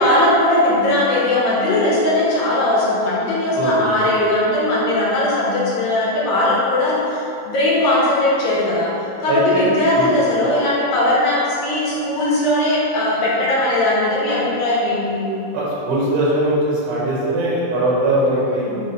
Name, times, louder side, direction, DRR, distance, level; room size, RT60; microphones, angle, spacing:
voice 1, 0.0-8.9 9.2-15.3 18.5-18.8, left 1 dB, 60° left, -7 dB, 2.5 m, -18 dB
voice 2, 3.6-4.0 9.3-10.1 15.5-18.7, right 1 dB, 90° right, -5 dB, 3.8 m, -20 dB
10.5 x 3.6 x 5.0 m, 2.8 s
omnidirectional pair, 4.6 m